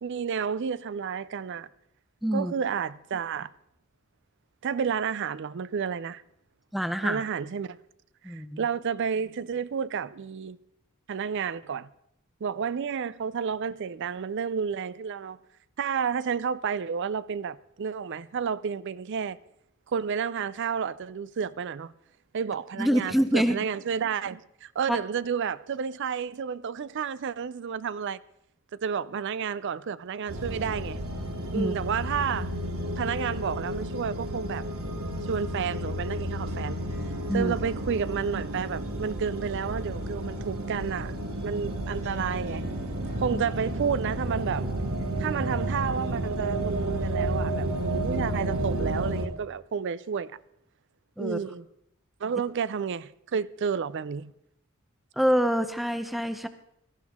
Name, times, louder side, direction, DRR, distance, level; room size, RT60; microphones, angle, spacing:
voice 1, 0.0-1.7 2.3-3.5 4.6-6.2 7.0-7.8 8.3-10.6 11.1-11.9 12.4-15.4 15.8-19.4 19.9-21.9 22.3-28.2 28.8-31.0 31.5-32.6 33.0-34.7 35.2-36.9 37.3-41.2 41.4-42.6 43.2-44.7 45.2-50.4 51.2-51.6 52.2-54.3, right 6 dB, 55° right, 0.4 m, -31 dB
voice 2, 2.2-2.5 6.7-7.2 8.2-8.6 22.8-23.6 24.9-25.0 31.5-31.7 37.3-37.5 43.3-43.4 51.2-51.4 55.2-56.5, equal, ahead, 0.7 m, -26 dB
sound 1, 30.3-49.3, right 1 dB, 75° right, 1.5 m, -32 dB
sound 2, 34.8-47.5, right 2 dB, 30° right, 1.8 m, -44 dB
17.5 x 13.5 x 3.6 m
head